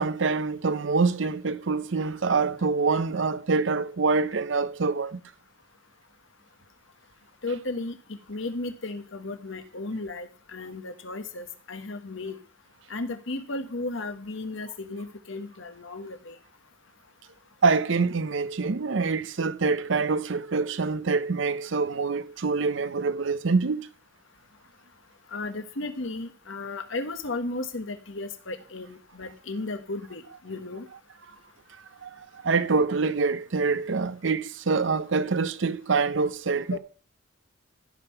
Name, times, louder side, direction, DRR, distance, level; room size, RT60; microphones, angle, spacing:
voice 1, 0.0-5.2 17.6-23.9 32.0-36.8, right 4 dB, 65° right, 0.6 m, -25 dB
voice 2, 7.4-7.9 8.3-12.4 12.9-16.4 25.3-30.8 36.7-36.8, left 2 dB, 70° left, 1.3 m, -34 dB
15.0 x 5.7 x 5.8 m
head